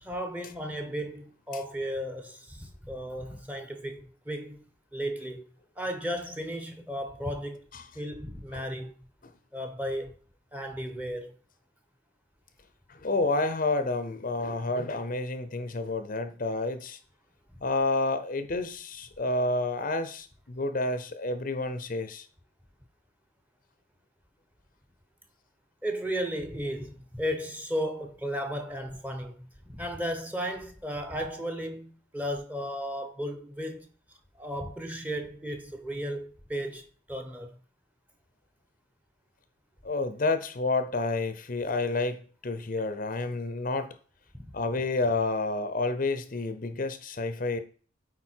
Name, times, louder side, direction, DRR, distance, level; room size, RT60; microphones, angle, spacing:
voice 1, 0.0-4.6 4.9-5.4 5.8-7.7 7.9-9.1 9.5-10.1 10.5-11.4 25.8-33.9 34.3-37.6 44.3-44.4, equal, 10° right, 0.8 m, -35 dB
voice 2, 12.9-17.0 17.6-22.3 39.8-43.9 44.5-47.6, left 2 dB, 40° left, 0.6 m, -29 dB
8.6 x 4.3 x 4.5 m
head